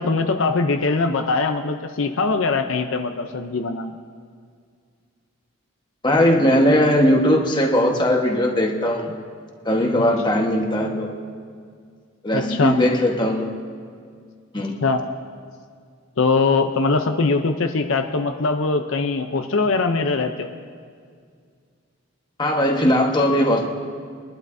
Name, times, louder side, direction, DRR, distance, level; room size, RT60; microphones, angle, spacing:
voice 1, 0.0-3.9 12.3-12.8 14.8-15.0 16.2-20.5, left 3 dB, 75° left, 6 dB, 0.6 m, -21 dB
voice 2, 6.0-9.1 9.6-11.1 12.2-13.5 14.5-14.7 22.4-23.7, equal, 20° left, 0 dB, 1.3 m, -19 dB
22.5 x 11.5 x 2.7 m, 2.1 s
head